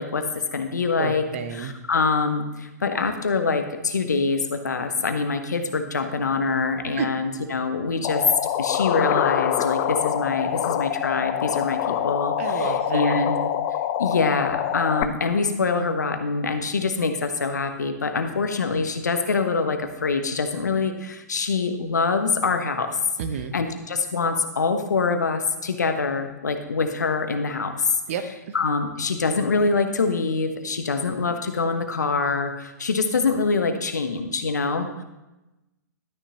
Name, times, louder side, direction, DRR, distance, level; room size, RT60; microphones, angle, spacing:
voice 1, 0.0-1.2 1.5-8.2 8.6-13.3 14.0-23.0 23.5-28.0 28.5-35.0, left 4 dB, 70° left, 7 dB, 1.1 m, -25 dB
voice 2, 1.0-1.8 6.9-7.1 12.4-13.3 23.2-23.5 28.1-28.5, right 7 dB, 45° right, 10 dB, 0.9 m, -30 dB
sound 1, 8.0-15.0, left 11 dB, 35° left, 0.5 m, -25 dB
12.0 x 9.8 x 3.0 m, 0.99 s
figure-of-eight pair, 110°, 10 cm